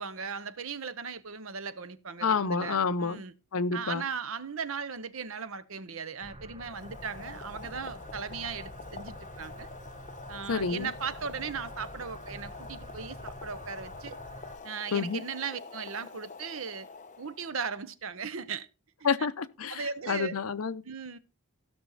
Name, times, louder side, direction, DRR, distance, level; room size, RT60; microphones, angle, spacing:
voice 1, 0.0-3.3 3.7-9.7 10.3-14.2 14.6-16.9 17.2-18.7 19.2-19.3 19.7-20.4 20.8-21.2, right 6 dB, 65° right, 0.8 m, -37 dB
voice 2, 2.2-3.2 3.5-4.0 10.5-10.9 14.9-15.2 19.0-20.8, left 5 dB, 75° left, 0.7 m, -29 dB
sound 1, 6.2-14.6, right 1 dB, 25° right, 1.1 m, -47 dB
Boiling, 6.6-17.6, left 4 dB, 35° left, 0.9 m, -46 dB
15.0 x 6.3 x 4.0 m
head